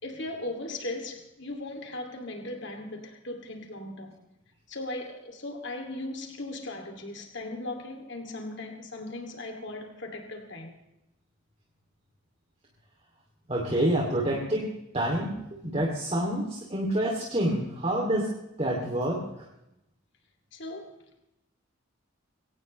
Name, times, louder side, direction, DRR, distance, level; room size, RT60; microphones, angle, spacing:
voice 1, 0.0-4.2 4.7-10.7 20.5-21.2, left 2 dB, 55° left, 2.6 m, -38 dB
voice 2, 13.5-14.7 14.9-19.5, right 1 dB, 30° right, 2.7 m, -28 dB
23.0 x 18.0 x 3.2 m
head